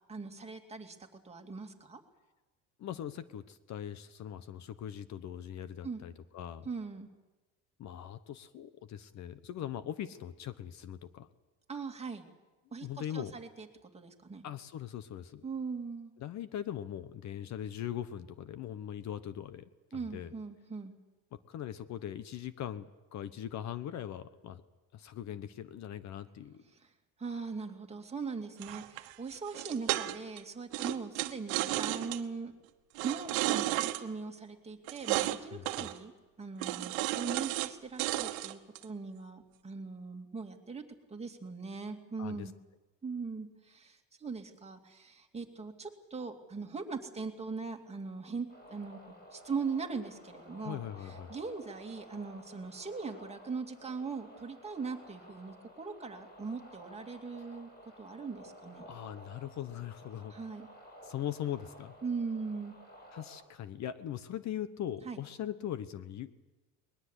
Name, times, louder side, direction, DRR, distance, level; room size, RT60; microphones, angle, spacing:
voice 1, 0.1-1.0 1.2-2.0 5.8-6.0 6.6-7.1 11.7-12.3 12.7-14.4 15.4-16.1 19.9-20.9 26.7-26.9 27.2-32.5 33.0-36.1 36.4-40.8 41.1-42.5 43.0-49.0 49.3-58.9 60.3-60.7 62.0-62.7 65.0-65.2, right 4 dB, 15° right, 3 dB, 2.5 m, -40 dB
voice 2, 2.8-6.7 7.8-11.3 12.8-13.3 14.4-15.5 16.2-20.3 21.3-24.6 24.9-26.6 35.5-35.9 42.2-42.5 50.6-51.3 58.9-60.3 61.0-61.9 63.1-66.4, left 10 dB, 50° left, 14 dB, 1.0 m, -41 dB
sound 1, 28.6-30.4 30.7-32.2 33.0-34.0 34.9-35.4 35.7-36.0 36.6-37.7 38.0-38.8, right 17 dB, 80° right, 1.3 m, -33 dB
sound 2, 48.5-63.4, equal, 25° left, 6.7 m, -54 dB
21.0 x 20.5 x 8.1 m, 1.1 s
cardioid pair, 125°, 36 cm